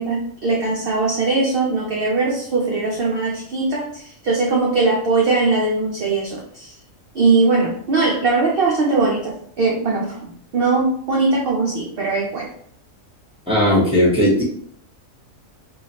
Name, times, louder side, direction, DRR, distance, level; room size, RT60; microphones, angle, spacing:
voice 1, 0.0-6.7 7.1-12.5, right 3 dB, 60° right, -2 dB, 0.6 m, -20 dB
voice 2, 13.5-14.4, equal, 5° right, -6 dB, 0.7 m, -16 dB
3.0 x 2.4 x 2.8 m, 0.65 s
omnidirectional pair, 1.4 m